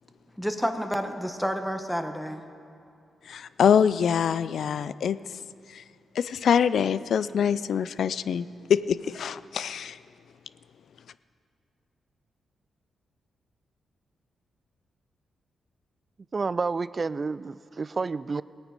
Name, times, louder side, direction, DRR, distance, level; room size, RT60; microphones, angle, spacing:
voice 1, 0.4-2.4, equal, 5° left, 6 dB, 1.1 m, -29 dB
voice 2, 3.3-5.2 5.8-5.9 6.2-10.0, left 8 dB, 70° left, 16 dB, 0.3 m, -24 dB
voice 3, 16.3-18.4, right 4 dB, 40° right, 18 dB, 0.3 m, -29 dB
18.0 x 9.2 x 5.2 m, 2.5 s
supercardioid pair, 55°, 0 cm